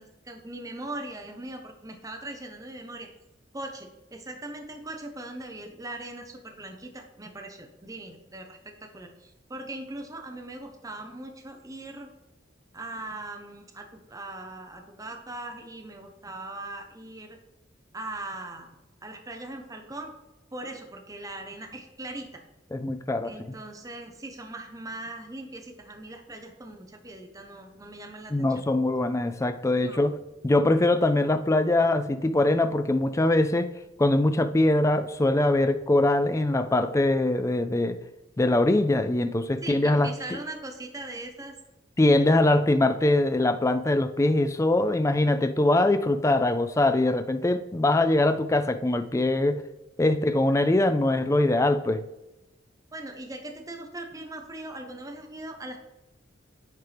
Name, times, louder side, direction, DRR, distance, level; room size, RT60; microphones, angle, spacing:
voice 1, 0.0-3.1 3.5-12.1 12.7-17.4 17.9-18.7 19.0-20.1 20.5-22.4 23.2-28.6 29.8-30.0 39.6-41.5 52.9-55.8, right 2 dB, 20° right, 0.8 m, -40 dB
voice 2, 22.7-23.3 28.3-30.2 30.4-33.7 34.0-38.0 38.4-40.1 42.0-49.6 50.0-52.0, left 2 dB, 15° left, 0.4 m, -22 dB
9.2 x 4.4 x 3.4 m
head